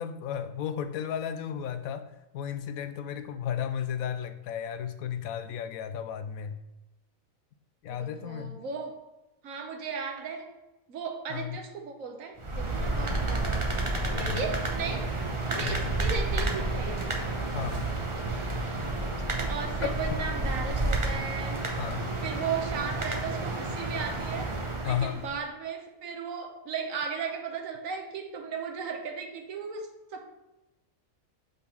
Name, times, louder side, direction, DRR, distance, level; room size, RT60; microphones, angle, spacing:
voice 1, 0.0-6.6 7.8-8.6 11.3-11.6 13.0-13.2 14.2-14.4 15.6-15.9 17.5-17.9 19.8-20.2 21.8-22.1 24.8-25.2, left 8 dB, 85° left, 9 dB, 1.0 m, -34 dB
voice 2, 7.9-9.0 9.4-10.5 10.9-13.7 14.1-15.1 15.5-17.1 19.5-21.7 22.2-24.6 24.8-30.3, right 6 dB, 75° right, 4 dB, 1.3 m, -36 dB
sound 1, 12.4-25.4, right 2 dB, 30° right, 0.6 m, -31 dB
sound 2, 16.7-20.7, right 2 dB, 45° right, 1.4 m, -41 dB
5.3 x 3.6 x 5.8 m, 0.99 s
omnidirectional pair, 1.4 m